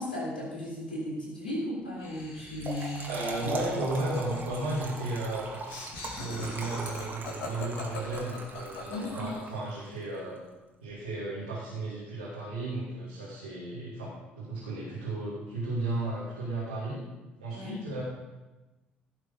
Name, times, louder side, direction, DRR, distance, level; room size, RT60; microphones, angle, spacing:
voice 1, 0.0-3.1 3.4-3.5 8.9-9.3 17.5-17.8, left 1 dB, 80° left, -6 dB, 3.4 m, -35 dB
Laughter, 2.0-9.6, left 2 dB, 60° left, 3.3 m, -42 dB
Trickle dribble / Fill (with liquid), 2.4-9.8, right 3 dB, 35° right, 2.5 m, -40 dB
voice 2, 3.1-5.7 6.0-10.4 10.8-17.0 17.4-18.0, right 2 dB, 80° right, -8 dB, 2.7 m, -34 dB
17.0 x 6.1 x 5.2 m, 1.1 s
figure-of-eight pair, 50°, 5 cm